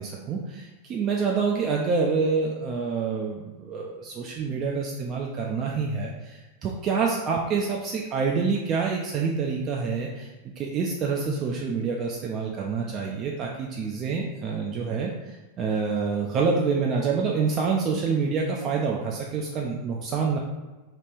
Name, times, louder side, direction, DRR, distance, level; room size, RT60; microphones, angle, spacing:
voice 1, 0.0-20.4, right 5 dB, 30° right, -1 dB, 0.3 m, -27 dB
2.9 x 2.4 x 3.3 m, 1.2 s
figure-of-eight pair, 90°, 0 cm